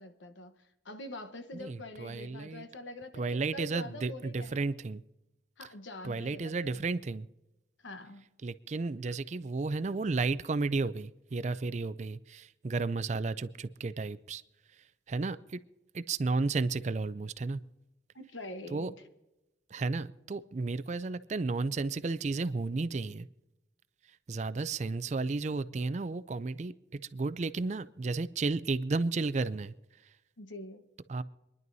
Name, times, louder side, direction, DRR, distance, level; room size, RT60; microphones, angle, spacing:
voice 1, 0.0-4.6 5.6-6.8 7.8-8.3 18.1-19.0 30.4-30.9, left 1 dB, 85° left, 1.1 m, -45 dB
voice 2, 1.6-2.7 3.2-5.0 6.0-7.3 8.4-14.4 15.1-15.6 15.9-17.6 18.7-18.9 19.7-23.3 24.3-26.7 27.1-29.7 31.1-31.2, right 3 dB, 40° right, 0.4 m, -33 dB
26.0 x 11.0 x 2.7 m
head